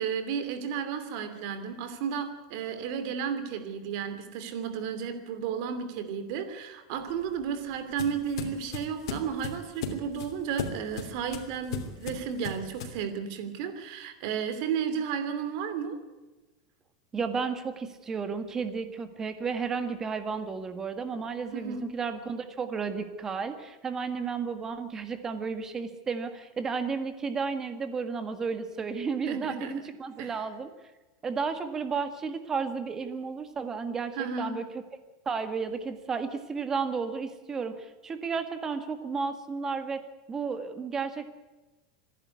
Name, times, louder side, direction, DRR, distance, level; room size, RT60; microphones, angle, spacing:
voice 1, 0.0-16.0 21.5-21.9 29.3-29.8 30.2-30.4 34.2-34.6, right 7 dB, 55° right, 10 dB, 2.8 m, -33 dB
sound 1, 7.0-13.0, left 5 dB, 80° left, 3.0 m, -38 dB
voice 2, 17.1-30.7 31.2-34.6 35.3-40.0 40.3-41.3, right 5 dB, 20° right, 9 dB, 1.7 m, -33 dB
26.5 x 11.0 x 9.6 m, 1.2 s
supercardioid pair, 155°, 3 cm